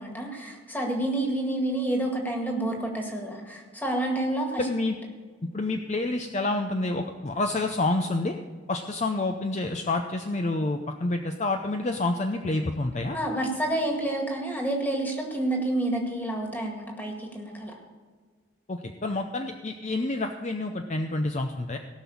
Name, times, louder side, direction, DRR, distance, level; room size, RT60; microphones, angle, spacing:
voice 1, 0.0-4.7 13.1-17.7, right 1 dB, 10° left, 1 dB, 1.9 m, -29 dB
voice 2, 4.6-5.0 5.4-8.3 8.7-13.2 18.7-21.8, left 2 dB, 35° left, 5 dB, 0.6 m, -28 dB
17.5 x 6.0 x 7.2 m, 1.5 s
head